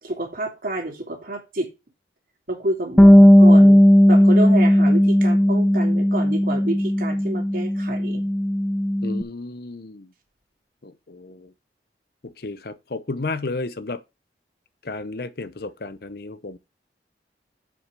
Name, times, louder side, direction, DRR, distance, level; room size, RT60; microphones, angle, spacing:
voice 1, 0.0-1.7 2.5-3.8 4.1-8.2, right 1 dB, 50° right, 3.1 m, -29 dB
Bass guitar, 3.0-9.2, equal, 5° left, 0.4 m, -15 dB
voice 2, 9.0-10.1 10.8-11.5 12.2-14.0 14.8-16.6, left 3 dB, 55° left, 0.8 m, -33 dB
7.8 x 6.1 x 5.3 m
head